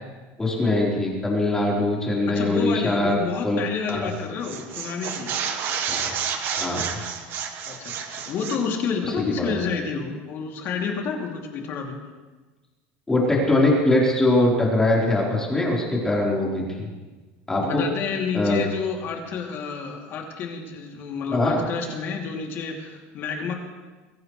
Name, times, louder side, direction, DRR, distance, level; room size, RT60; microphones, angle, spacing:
voice 1, 0.4-3.2 3.4-3.6 3.9-4.1 5.9-6.1 6.6-6.8 9.0-9.5 13.1-16.9 17.5-17.8 18.3-18.6 21.3-21.6, left 2 dB, 10° left, -4 dB, 4.1 m, -22 dB
voice 2, 2.3-5.3 7.6-12.0 17.6-23.5, left 5 dB, 45° left, 1 dB, 2.8 m, -29 dB
sound 1, 3.9-4.1 4.4-8.7, right 7 dB, 40° right, 1.4 m, -30 dB
22.5 x 16.0 x 3.3 m, 1.3 s
cardioid pair, 150°, 5 cm